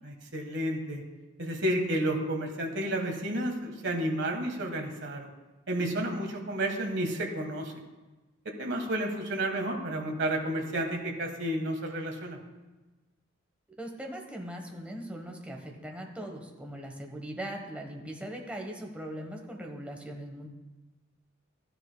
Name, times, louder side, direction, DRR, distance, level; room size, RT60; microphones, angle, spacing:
voice 1, 0.0-1.0 1.4-5.3 5.7-7.7 8.6-12.4, right 1 dB, 60° right, 3 dB, 1.5 m, -31 dB
voice 2, 13.8-20.5, right 1 dB, 5° right, 1 dB, 1.1 m, -40 dB
13.5 x 10.0 x 2.2 m, 1.2 s
head